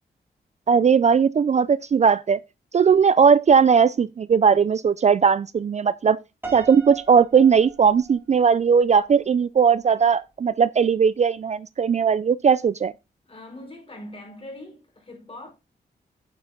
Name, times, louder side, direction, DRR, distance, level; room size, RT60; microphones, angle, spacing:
voice 1, 0.7-2.4 2.7-6.2 6.5-12.9, right 6 dB, 40° right, 0.4 m, -18 dB
Piano, 6.4-8.7, right 5 dB, 15° right, 3.8 m, -39 dB
voice 2, 13.3-15.5, left 1 dB, 35° left, 5.2 m, -41 dB
8.9 x 7.7 x 3.8 m
wide cardioid pair, 95°, 17 cm